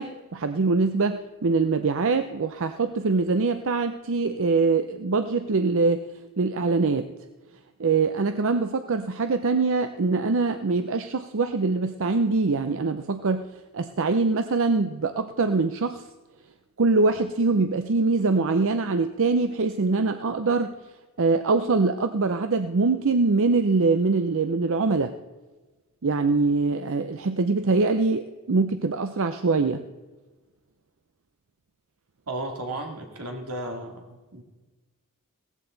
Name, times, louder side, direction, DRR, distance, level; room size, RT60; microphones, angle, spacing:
voice 1, 0.0-6.1 6.4-7.1 7.8-13.4 13.7-16.0 16.8-20.7 21.2-25.1 26.0-29.8, right 3 dB, 60° right, 9 dB, 0.6 m, -23 dB
voice 2, 32.3-34.4, right 1 dB, 90° right, 2 dB, 2.5 m, -34 dB
17.0 x 14.5 x 4.0 m, 1.2 s
head